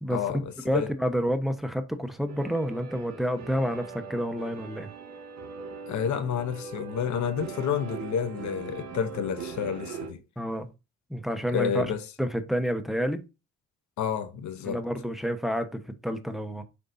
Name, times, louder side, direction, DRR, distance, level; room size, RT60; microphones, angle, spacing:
voice 1, 0.1-0.9 5.9-10.2 11.5-12.0 14.0-14.8, left 8 dB, 70° left, 0.9 m, -30 dB
voice 2, 0.6-4.9 10.4-10.7 11.1-11.9 12.2-13.2 14.6-16.6, equal, ahead, 1.0 m, -29 dB
sound 1, 2.3-10.1, right 5 dB, 60° right, 2.2 m, -41 dB
6.7 x 5.4 x 2.6 m
cardioid pair, 90°, 30 cm